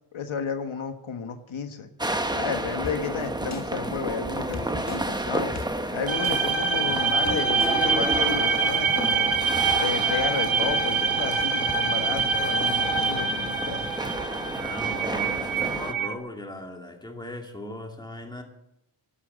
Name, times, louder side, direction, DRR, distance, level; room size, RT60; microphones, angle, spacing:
voice 1, 0.1-1.9 2.3-5.5 5.9-9.3 9.8-13.9, left 6 dB, 75° left, 7 dB, 1.4 m, -32 dB
sound 1, 2.0-15.9, right 1 dB, 10° right, 1.0 m, -31 dB
sound 2, 2.8-2.9 3.5-3.6 4.5-5.0 5.6-5.7 6.2-6.4 6.9-7.0 7.3-7.7 8.1-8.2, left 3 dB, 35° left, 1.5 m, -35 dB
sound 3, 6.1-16.1, right 5 dB, 75° right, 2.0 m, -25 dB
voice 2, 14.5-18.4, left 1 dB, 10° left, 2 dB, 2.5 m, -38 dB
11.5 x 11.5 x 8.0 m, 0.82 s
wide cardioid pair, 120°, 48 cm